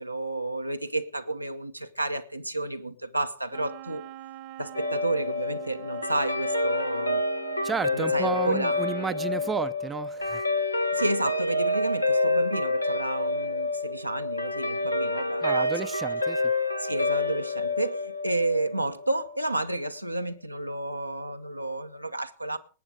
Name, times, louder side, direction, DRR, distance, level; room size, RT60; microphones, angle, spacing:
voice 1, 0.0-4.0 4.6-7.2 7.9-8.8 10.9-15.9 16.8-22.6, right 2 dB, 90° right, 0.9 m, -31 dB
Wind instrument woodwind instrument, 3.5-9.6, right 13 dB, 45° right, 1.1 m, -45 dB
Guitar, 4.7-19.3, left 2 dB, 85° left, 1.0 m, -28 dB
voice 2, 7.6-10.5 15.4-16.4, right 5 dB, 15° right, 0.6 m, -32 dB
19.0 x 8.8 x 5.0 m
figure-of-eight pair, 90°, 0 cm